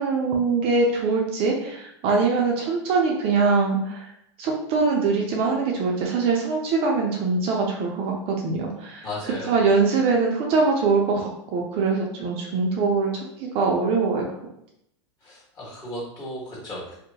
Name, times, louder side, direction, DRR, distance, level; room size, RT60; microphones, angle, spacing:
voice 1, 0.0-4.1 4.4-9.1 9.5-14.3, right 4 dB, 40° right, 0 dB, 0.5 m, -23 dB
voice 2, 9.0-9.6 15.2-16.9, left 1 dB, 30° left, -7 dB, 1.4 m, -35 dB
2.6 x 2.1 x 2.7 m, 0.78 s
hypercardioid pair, 115°, 15 cm